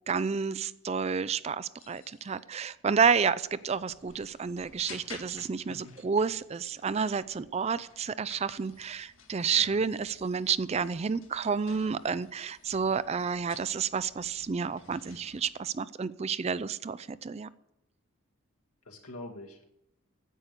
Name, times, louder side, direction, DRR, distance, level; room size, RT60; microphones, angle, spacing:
voice 1, 0.1-17.5, right 6 dB, 30° right, 16 dB, 0.3 m, -30 dB
sound 1, 1.8-15.6, left 5 dB, 65° left, 1.8 m, -54 dB
voice 2, 18.9-19.6, left 1 dB, 90° left, 1 dB, 2.0 m, -45 dB
10.0 x 8.2 x 8.1 m, 0.84 s
head